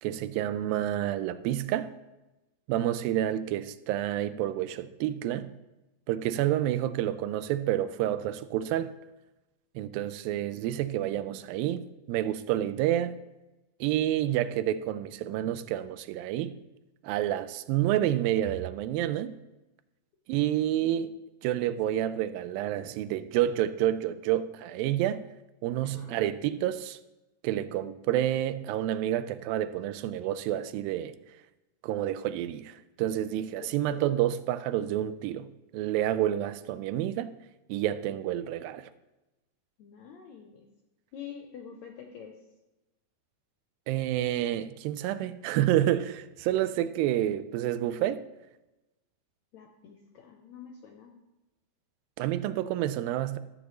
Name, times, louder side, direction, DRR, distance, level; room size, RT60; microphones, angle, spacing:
voice 1, 0.0-1.9 2.7-5.5 6.1-8.9 9.8-11.8 12.1-13.2 13.8-16.5 17.0-19.3 20.3-21.1 21.4-25.2 25.6-27.0 27.4-31.1 31.8-35.5 35.7-37.3 37.7-38.9 43.9-48.2 52.2-53.4, right 12 dB, 90° right, 2.3 m, -29 dB
voice 2, 25.8-26.2 33.7-34.3 39.8-40.7 41.1-42.3 49.5-51.1, left 8 dB, 80° left, 1.6 m, -46 dB
13.5 x 8.1 x 3.1 m
omnidirectional pair, 4.1 m